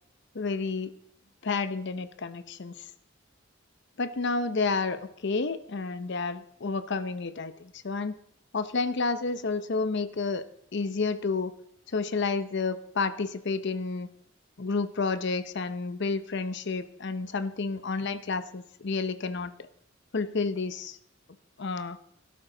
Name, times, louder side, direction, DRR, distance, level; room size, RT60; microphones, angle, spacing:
voice 1, 0.3-0.9 1.4-2.9 4.0-8.1 8.5-10.5 10.7-11.5 11.9-14.1 14.6-19.5 20.1-21.0 21.6-22.0, left 4 dB, 60° left, 12 dB, 0.7 m, -30 dB
18.0 x 12.0 x 3.9 m, 0.72 s
head